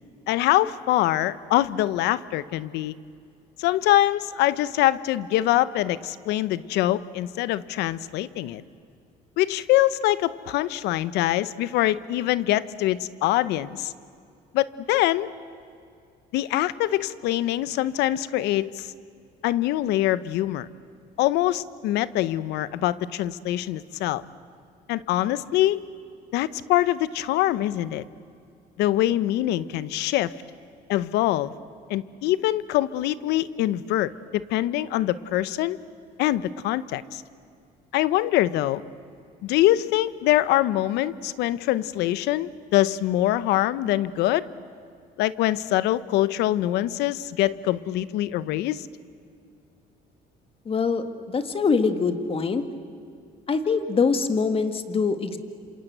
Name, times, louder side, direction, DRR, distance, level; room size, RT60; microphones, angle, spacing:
voice 1, 0.3-3.0 3.6-8.6 9.4-13.9 14.5-15.3 16.3-18.9 19.4-20.7 21.2-24.2 24.9-25.8 26.3-28.0 28.8-30.3 30.9-31.5 31.9-35.8 36.2-37.2 37.9-38.8 39.4-44.4 45.2-48.9, left 14 dB, 90° left, 17 dB, 0.9 m, -24 dB
voice 2, 50.7-52.6 53.5-55.4, left 5 dB, 35° left, 9 dB, 1.9 m, -24 dB
27.5 x 27.0 x 8.1 m, 2.4 s
cardioid pair, 110°, 17 cm